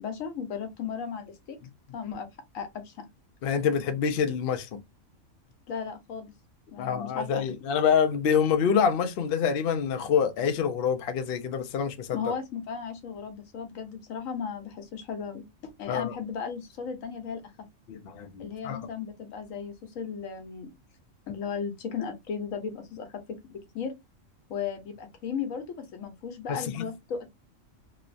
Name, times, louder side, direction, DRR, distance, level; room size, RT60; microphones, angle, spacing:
voice 1, 0.0-1.6 1.9-2.3 2.5-3.1 5.7-6.3 6.7-7.4 12.1-17.4 18.4-20.7 21.3-23.9 24.5-27.3, left 6 dB, 80° left, 1.1 m, -35 dB
voice 2, 3.4-4.8 6.8-12.3 15.9-16.1 17.9-18.8 26.5-26.8, left 7 dB, 60° left, 0.6 m, -26 dB
2.9 x 2.0 x 2.4 m
omnidirectional pair, 1.4 m